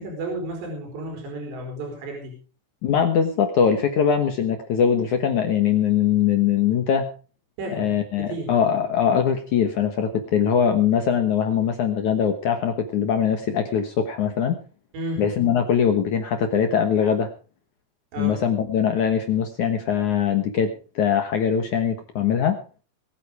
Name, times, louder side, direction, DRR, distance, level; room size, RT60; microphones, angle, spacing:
voice 1, 0.0-2.4 7.6-7.9 8.2-8.5 14.9-15.3 18.1-18.4, right 1 dB, 75° right, 1 dB, 6.3 m, -32 dB
voice 2, 2.8-7.1 7.7-14.6 15.2-17.3 18.2-22.6, left 8 dB, 65° left, 6 dB, 2.0 m, -22 dB
21.0 x 9.1 x 4.9 m, 0.37 s
omnidirectional pair, 5.1 m